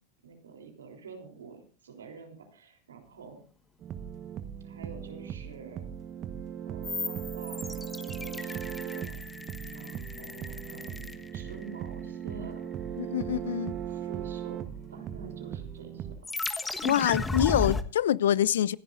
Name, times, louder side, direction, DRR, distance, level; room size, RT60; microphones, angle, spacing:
voice 1, 0.2-3.4 4.6-5.9 6.7-9.2 9.7-12.8 13.9-14.6 14.9-16.4, right 4 dB, 85° right, 4 dB, 3.5 m, -48 dB
sound 1, 3.8-16.2, right 9 dB, 35° right, 1.2 m, -38 dB
sound 2, 6.8-11.9 16.2-17.8, left 3 dB, 15° left, 1.3 m, -35 dB
sound 3, 7.4-17.6, left 4 dB, 45° left, 3.1 m, -59 dB
voice 2, 13.0-13.7 16.8-18.8, left 11 dB, 75° left, 21 dB, 0.5 m, -25 dB
26.0 x 11.0 x 2.6 m, 0.36 s
hypercardioid pair, 95°, 0 cm